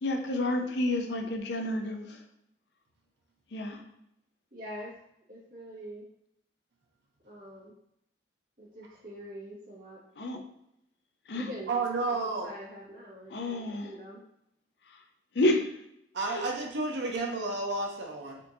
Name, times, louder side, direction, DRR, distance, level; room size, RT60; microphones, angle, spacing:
voice 1, 0.0-2.2 3.5-3.8 10.2-10.4 11.3-11.5 13.3-13.9 15.4-15.7 16.3-16.4, left 1 dB, 70° left, 4 dB, 0.5 m, -29 dB
voice 2, 4.5-4.9 5.3-6.0 7.2-7.7 8.6-10.0 11.3-11.8 12.1-12.2 12.4-14.2, equal, 50° right, -5 dB, 1.4 m, -44 dB
voice 3, 11.7-12.5 16.1-18.4, right 3 dB, 75° right, 1 dB, 0.7 m, -31 dB
4.3 x 2.7 x 2.6 m, 0.78 s
head